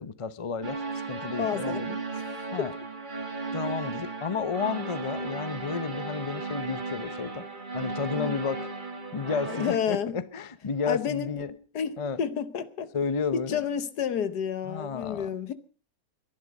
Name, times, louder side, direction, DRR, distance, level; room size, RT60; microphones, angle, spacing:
voice 1, 0.0-2.0 2.5-2.7 3.5-7.5 7.7-8.7 9.1-11.6 12.0-12.2 12.9-13.6 14.6-15.3, left 5 dB, 40° left, 0.5 m, -32 dB
sound 1, 0.6-9.7, right 3 dB, 25° right, 2.1 m, -35 dB
voice 2, 1.4-1.8 2.6-2.7 8.2-8.4 9.5-10.2 10.9-11.5 11.7-12.9 13.3-15.5, left 8 dB, 65° left, 1.6 m, -30 dB
22.0 x 11.0 x 5.3 m
omnidirectional pair, 1.9 m